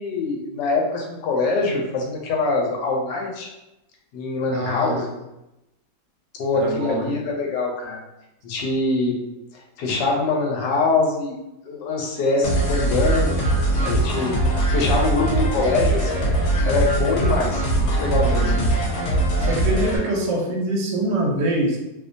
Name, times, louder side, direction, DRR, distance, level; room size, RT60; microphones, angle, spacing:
voice 1, 0.0-3.5 4.1-5.1 6.4-8.0 8.4-9.2 9.5-11.4 11.7-13.4 13.8-14.4 14.7-18.5 19.4-19.6, left 3 dB, 85° left, -1 dB, 1.3 m, -24 dB
voice 2, 4.5-5.0 6.5-7.1 18.3-18.7 19.4-21.8, right 1 dB, 80° right, -1 dB, 1.2 m, -24 dB
sound 1, 12.4-20.0, right 2 dB, 70° left, 1.2 m, -21 dB
2.9 x 2.1 x 2.5 m, 0.94 s
omnidirectional pair, 1.9 m